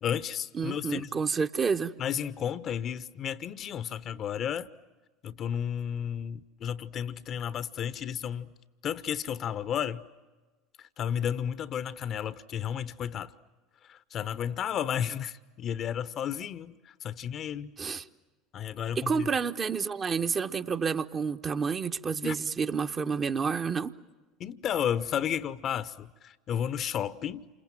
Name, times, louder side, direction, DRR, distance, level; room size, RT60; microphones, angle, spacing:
voice 1, 0.0-1.1 2.0-4.7 5.2-8.5 8.8-10.0 10.8-13.3 13.9-17.7 18.5-19.3 22.2-22.3 24.4-27.5, left 9 dB, 40° left, 0.9 m, -32 dB
voice 2, 0.5-1.9 17.8-18.0 19.0-23.9, right 5 dB, 30° right, 1.0 m, -29 dB
29.0 x 26.5 x 7.6 m
figure-of-eight pair, 70°, 0 cm